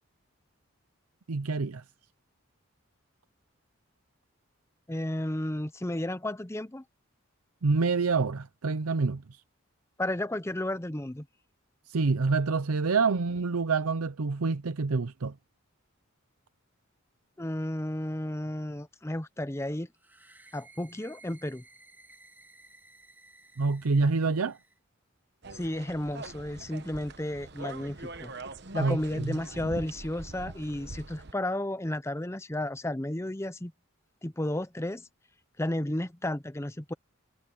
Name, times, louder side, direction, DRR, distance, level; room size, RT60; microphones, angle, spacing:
voice 1, 1.3-1.8 7.6-9.4 11.9-15.3 23.6-24.6 28.7-29.4, right 4 dB, 90° right, 0.7 m, -27 dB
voice 2, 4.9-6.8 10.0-11.3 17.4-19.9 20.5-21.6 25.5-28.3 28.7-33.7 34.2-35.1 35.6-36.9, left 1 dB, 10° left, 0.6 m, -33 dB
sound 1, 20.0-24.8, right 2 dB, 10° right, 3.1 m, -57 dB
sound 2, 25.4-31.3, right 3 dB, 50° right, 1.0 m, -42 dB
head